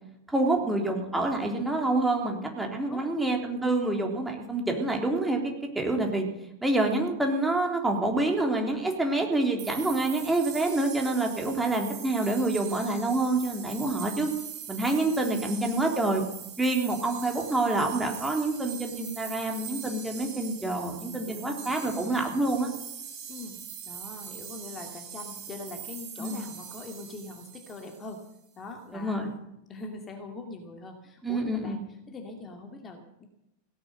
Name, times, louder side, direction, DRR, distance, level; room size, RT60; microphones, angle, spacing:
voice 1, 0.3-5.4 5.7-6.2 6.6-14.3 14.7-16.2 16.6-22.7 26.2-26.4 28.9-29.4 31.2-31.8, right 2 dB, 5° right, 1 dB, 3.4 m, -27 dB
sound 1, 9.6-28.3, right 8 dB, 40° right, 4.9 m, -42 dB
voice 2, 11.6-12.0 15.3-15.9 21.2-21.7 23.3-23.6 23.8-28.2 28.6-29.3 29.7-31.8 32.1-33.3, left 3 dB, 25° left, 3 dB, 2.4 m, -42 dB
17.0 x 9.7 x 7.8 m, 0.85 s
figure-of-eight pair, 90°, 0 cm